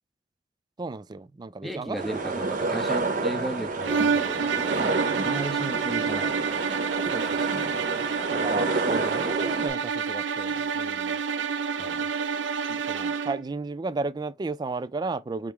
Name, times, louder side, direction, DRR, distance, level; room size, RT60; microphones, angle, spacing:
voice 1, 0.8-2.2 7.1-7.9 8.3-11.2 12.7-15.5, right 3 dB, 20° right, 0.3 m, -34 dB
voice 2, 1.6-6.4 11.8-12.1, right 1 dB, ahead, 0.7 m, -35 dB
sound 1, 2.0-9.7, right 3 dB, 45° right, 0.9 m, -29 dB
sound 2, 3.8-13.5, right 6 dB, 70° right, 0.6 m, -28 dB
5.1 x 3.0 x 3.4 m
head